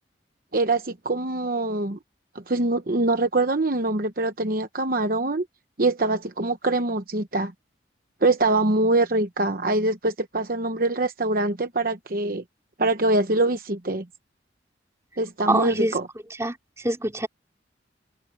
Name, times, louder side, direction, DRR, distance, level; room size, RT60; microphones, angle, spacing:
voice 1, 0.5-2.0 2.3-5.4 5.8-7.5 8.2-12.4 12.8-14.1 15.2-16.1, right 2 dB, 50° right, 1.0 m, -24 dB
voice 2, 15.5-15.9 16.4-17.3, right 1 dB, 15° right, 3.1 m, -25 dB
open air
head